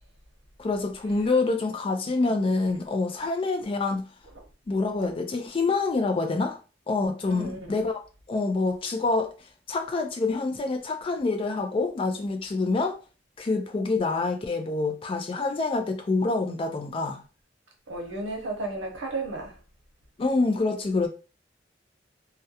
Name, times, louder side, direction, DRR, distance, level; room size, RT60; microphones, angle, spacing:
voice 1, 0.6-4.1 4.7-6.6 6.9-8.0 8.3-9.3 9.7-13.0 13.4-17.2 20.2-21.1, left 3 dB, 30° left, 0.3 m, -26 dB
voice 2, 7.3-7.7 17.9-19.6, right 2 dB, 85° right, 0.7 m, -33 dB
2.3 x 2.1 x 2.7 m
head